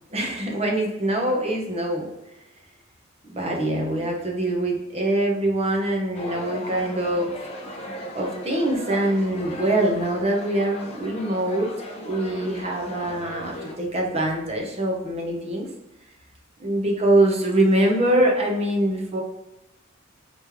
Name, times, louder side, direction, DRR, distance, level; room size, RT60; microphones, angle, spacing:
voice 1, 0.1-2.1 3.3-7.3 8.1-11.7 12.0-15.7 16.6-19.2, right 1 dB, 30° right, -1 dB, 0.8 m, -23 dB
sound 1, 6.1-13.7, left 1 dB, 30° left, 0.6 m, -37 dB
4.1 x 3.2 x 3.6 m, 0.94 s
head